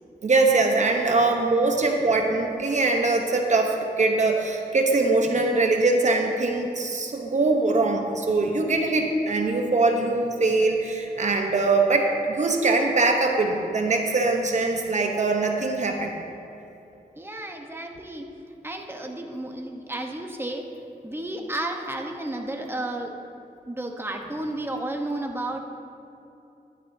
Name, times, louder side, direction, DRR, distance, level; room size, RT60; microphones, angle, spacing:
voice 1, 0.2-16.1, right 3 dB, 50° right, 2 dB, 0.9 m, -22 dB
voice 2, 17.2-18.2 18.6-20.7 21.0-23.2 23.7-25.6, right 1 dB, 15° right, 2 dB, 1.0 m, -32 dB
11.5 x 11.0 x 2.7 m, 2.8 s
cardioid pair, 75°, 16 cm